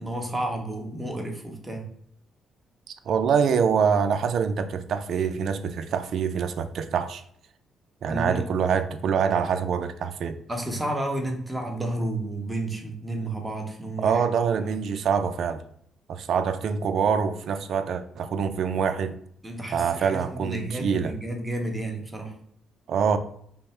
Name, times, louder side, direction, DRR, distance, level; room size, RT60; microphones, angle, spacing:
voice 1, 0.0-1.9 8.0-8.5 10.5-14.2 14.6-14.7 19.4-22.3, right 1 dB, 10° right, 1.0 m, -31 dB
voice 2, 2.9-7.2 8.0-10.4 14.0-15.6 16.1-19.2 19.7-21.1 22.9-23.2, right 6 dB, 60° right, 0.4 m, -25 dB
5.3 x 2.1 x 4.3 m
cardioid pair, 120°, 0 cm